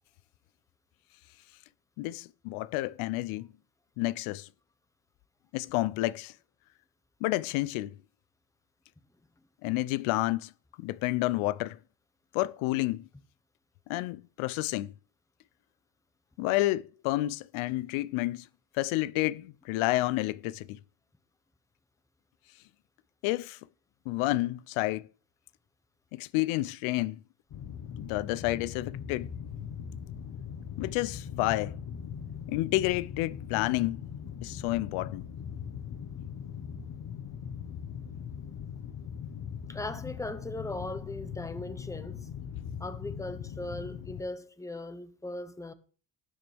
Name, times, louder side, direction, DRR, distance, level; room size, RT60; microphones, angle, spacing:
voice 1, 2.0-3.5 4.0-4.5 5.5-6.3 7.2-7.9 9.6-10.5 10.8-11.8 12.3-13.1 13.9-14.9 16.4-18.5 18.7-20.8 23.2-23.6 24.1-25.1 26.1-27.2 28.0-29.3 30.8-31.8 32.5-34.0 34.4-35.3, left 18 dB, 75° left, 0.6 m, -30 dB
sound 1, 27.5-44.2, left 7 dB, 45° left, 1.2 m, -40 dB
voice 2, 39.7-42.3 42.8-45.7, left 2 dB, 5° left, 1.0 m, -38 dB
18.0 x 6.8 x 3.5 m
cardioid pair, 105°, 49 cm